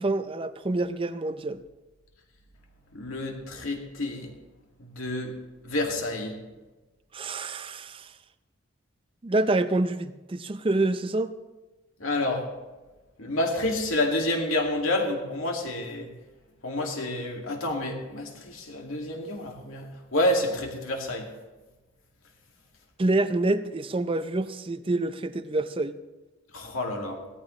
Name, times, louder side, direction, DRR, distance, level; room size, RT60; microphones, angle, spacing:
voice 1, 0.0-1.6 7.1-8.1 9.2-11.3 23.0-25.9, right 2 dB, 25° right, 12 dB, 0.4 m, -27 dB
voice 2, 2.9-4.3 4.8-5.3 5.6-6.3 12.0-12.5 13.2-16.1 16.6-21.3 26.5-27.2, left 1 dB, 80° left, 1 dB, 2.2 m, -29 dB
17.0 x 13.5 x 3.2 m, 1.1 s
head